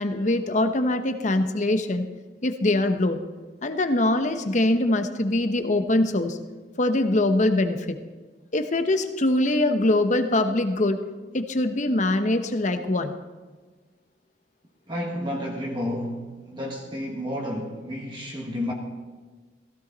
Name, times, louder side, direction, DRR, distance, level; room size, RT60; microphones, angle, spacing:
voice 1, 0.0-2.1 2.4-3.3 3.6-6.4 6.8-8.0 8.5-11.0 11.3-13.1, left 1 dB, 45° left, 8 dB, 0.9 m, -23 dB
voice 2, 14.9-18.7, left 1 dB, 25° right, -1 dB, 1.5 m, -31 dB
16.0 x 15.5 x 4.0 m, 1.3 s
head